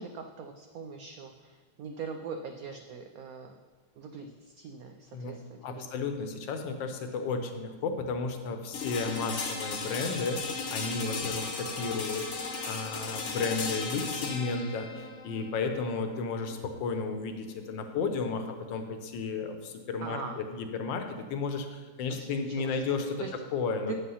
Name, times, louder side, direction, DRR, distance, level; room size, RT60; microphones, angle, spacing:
voice 1, 0.0-3.6 4.0-5.9 20.0-20.4 22.1-23.3 23.9-24.0, right 5 dB, 70° right, 5 dB, 0.8 m, -42 dB
voice 2, 5.6-10.4 10.7-12.3 12.7-23.2 23.5-24.0, left 4 dB, 75° left, 6 dB, 1.5 m, -33 dB
sound 1, 8.7-18.6, left 4 dB, 50° left, 1.0 m, -37 dB
8.4 x 5.6 x 5.6 m, 1.4 s
omnidirectional pair, 2.1 m